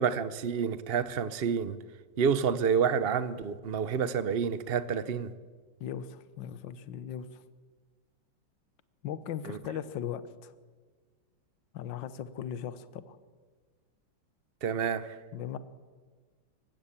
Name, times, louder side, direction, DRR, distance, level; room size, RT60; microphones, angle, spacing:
voice 1, 0.0-1.8 2.2-5.3 9.4-9.6 14.6-15.1, right 7 dB, 75° right, 0.5 m, -29 dB
voice 2, 5.8-7.4 9.0-10.5 11.7-13.2 15.3-15.6, left 9 dB, 70° left, 1.6 m, -38 dB
25.5 x 15.5 x 8.8 m
omnidirectional pair, 2.2 m